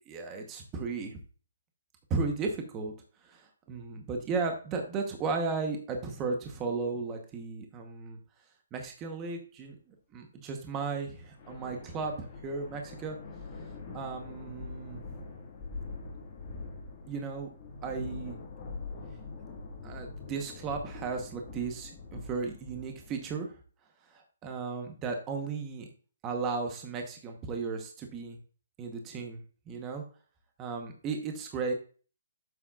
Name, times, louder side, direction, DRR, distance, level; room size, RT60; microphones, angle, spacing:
voice 1, 0.1-1.2 2.1-2.9 3.2-8.2 8.7-13.2 13.9-15.2 17.1-17.5 17.8-18.4 19.8-23.5 24.1-25.9 26.2-28.4 28.8-30.0 30.6-31.7, right 4 dB, 15° right, 3 dB, 0.9 m, -35 dB
sound 1, 11.2-23.4, left 3 dB, 20° left, 1.7 m, -44 dB
9.3 x 7.4 x 2.3 m, 0.38 s
hypercardioid pair, 175°, 0 cm